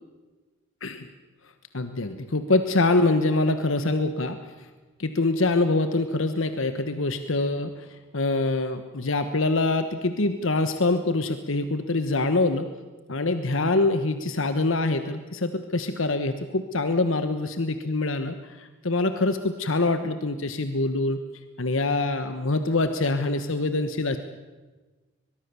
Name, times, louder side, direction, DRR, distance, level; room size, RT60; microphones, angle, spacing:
voice 1, 1.7-4.4 5.0-7.7 8.1-12.7 13.1-21.2 21.6-24.2, left 2 dB, 75° left, 9 dB, 1.2 m, -25 dB
23.0 x 22.0 x 7.0 m, 1.3 s
head